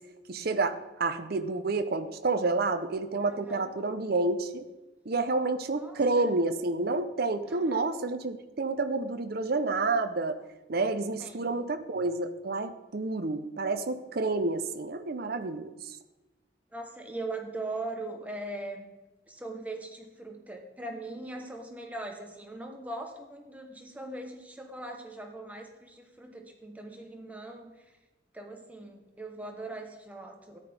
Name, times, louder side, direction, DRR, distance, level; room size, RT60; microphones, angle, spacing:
voice 1, 0.3-4.6 5.1-10.4 10.7-16.0, right 3 dB, 55° right, 8 dB, 0.7 m, -29 dB
voice 2, 3.2-3.7 5.8-6.3 7.5-7.9 11.2-11.5 16.7-18.9 19.3-27.9 28.3-30.6, right 2 dB, 10° right, 3 dB, 0.9 m, -40 dB
13.5 x 9.9 x 3.4 m, 1.1 s
head